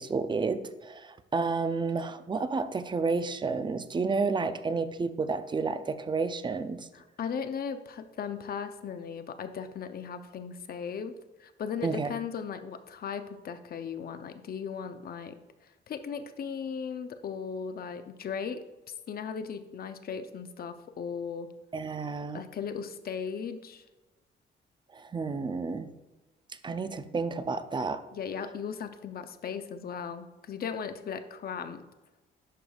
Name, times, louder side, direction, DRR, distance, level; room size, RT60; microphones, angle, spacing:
voice 1, 0.0-6.9 11.8-12.1 21.7-22.4 24.9-25.9 26.6-28.0, right 4 dB, 25° right, 12 dB, 0.5 m, -31 dB
voice 2, 6.9-11.1 11.4-15.4 15.9-18.6 19.1-21.5 22.3-23.8 28.1-31.8, left 6 dB, 50° left, 10 dB, 0.6 m, -37 dB
11.0 x 5.1 x 2.4 m, 1.1 s
cardioid pair, 90°, 20 cm